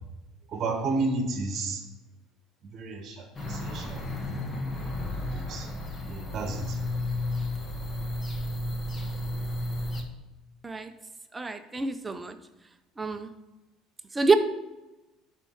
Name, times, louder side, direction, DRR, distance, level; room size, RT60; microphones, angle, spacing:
voice 1, 0.5-1.8 2.7-4.0 4.5-4.9 5.1-5.7 6.1-6.8, right 3 dB, 35° right, 4 dB, 1.2 m, -32 dB
sound 1, 3.4-10.0, left 1 dB, 25° left, 1.0 m, -33 dB
voice 2, 11.3-12.3 13.0-13.3 14.2-14.3, right 4 dB, 15° right, 8 dB, 0.6 m, -26 dB
11.0 x 4.5 x 5.7 m, 1.0 s
cardioid pair, 155°, 0 cm